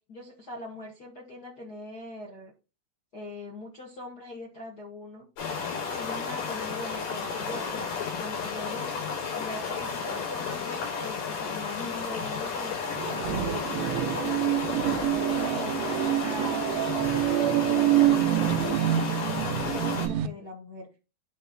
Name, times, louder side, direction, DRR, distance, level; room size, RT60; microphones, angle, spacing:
voice 1, 0.1-2.5 3.1-5.3 5.7-8.9 9.3-12.8 13.2-14.9 15.3-20.9, left 1 dB, 45° left, -2 dB, 1.2 m, -42 dB
sound 1, 5.4-20.1, left 5 dB, 75° left, 6.7 m, -33 dB
sound 2, 13.0-20.3, right 14 dB, 85° right, 2.1 m, -26 dB
10.5 x 3.6 x 6.0 m, 0.31 s
omnidirectional pair, 4.7 m